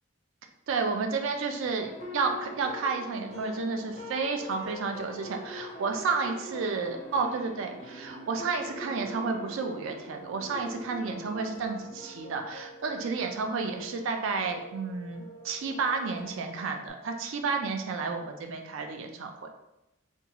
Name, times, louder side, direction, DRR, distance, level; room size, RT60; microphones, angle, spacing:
voice 1, 0.7-19.5, right 4 dB, 65° right, 5 dB, 0.3 m, -31 dB
sound 1, 1.3-16.9, left 1 dB, 30° left, 0.4 m, -44 dB
sound 2, 8.1-16.9, right 3 dB, 15° right, 0.7 m, -50 dB
2.5 x 2.3 x 2.8 m, 0.89 s
head